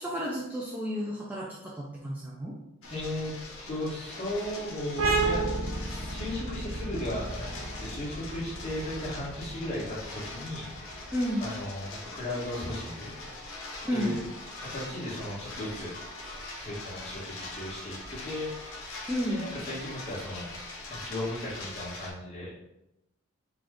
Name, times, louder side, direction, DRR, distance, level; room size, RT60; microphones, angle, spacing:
voice 1, 0.0-2.6 11.1-11.4 13.8-14.2 19.1-19.5, equal, 10° right, -5 dB, 0.4 m, -31 dB
sound 1, 2.8-22.1, left 2 dB, 75° left, 1.0 m, -42 dB
voice 2, 2.9-3.3 3.7-5.4 5.8-7.5 7.8-11.1 11.4-13.1 13.9-14.1 14.6-15.9 16.6-18.9 19.3-20.5 20.9-22.6, left 1 dB, 30° left, -7 dB, 1.5 m, -36 dB
sound 2, 5.0-12.3, right 3 dB, 90° right, 0.7 m, -33 dB
4.8 x 2.4 x 3.7 m, 0.88 s
head